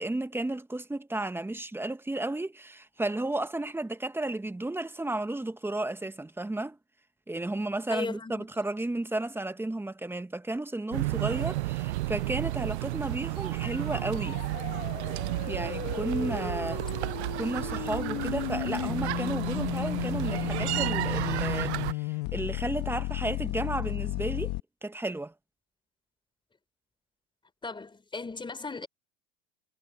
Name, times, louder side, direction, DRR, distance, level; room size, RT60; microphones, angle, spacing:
voice 1, 0.0-6.8 7.3-14.4 15.4-16.8 17.4-24.5 24.8-25.3, right 2 dB, 5° right, 1.4 m, -33 dB
voice 2, 7.9-8.5 27.6-28.9, left 3 dB, 15° left, 3.9 m, -36 dB
sound 1, 10.9-21.9, right 18 dB, 80° right, 0.7 m, -32 dB
sound 2, 13.3-24.6, left 24 dB, 60° left, 1.7 m, -34 dB
hypercardioid pair, 105°, 33 cm